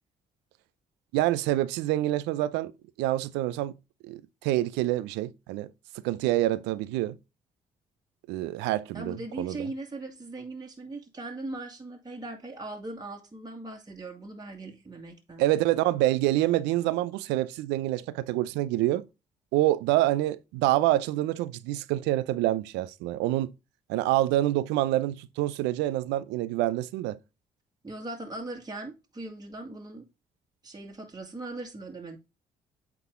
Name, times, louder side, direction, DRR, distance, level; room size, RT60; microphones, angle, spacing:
voice 1, 1.1-2.7 3.0-3.7 4.1-5.7 6.0-7.2 8.3-9.7 15.4-19.0 19.5-23.5 23.9-27.2, right 15 dB, 85° right, 0.6 m, -26 dB
voice 2, 8.9-15.4 27.8-30.1 30.6-32.2, right 2 dB, 25° right, 2.1 m, -39 dB
8.5 x 3.8 x 3.7 m
hypercardioid pair, 55°, 18 cm